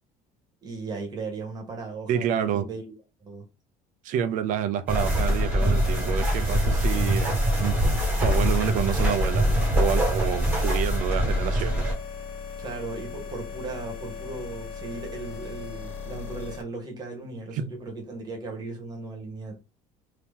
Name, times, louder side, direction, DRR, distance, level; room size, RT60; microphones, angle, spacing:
voice 1, 0.6-2.8 3.2-3.4 12.6-19.6, right 3 dB, 25° right, 1.3 m, -37 dB
voice 2, 2.1-2.7 4.0-7.8 8.2-9.5 9.7-11.8 17.5-17.7, right 9 dB, 55° right, 0.5 m, -28 dB
sound 1, 4.9-11.9, equal, 10° right, 1.5 m, -23 dB
sound 2, 10.7-16.6, left 6 dB, 70° left, 1.1 m, -38 dB
2.8 x 2.8 x 3.5 m
cardioid pair, 160°, 16 cm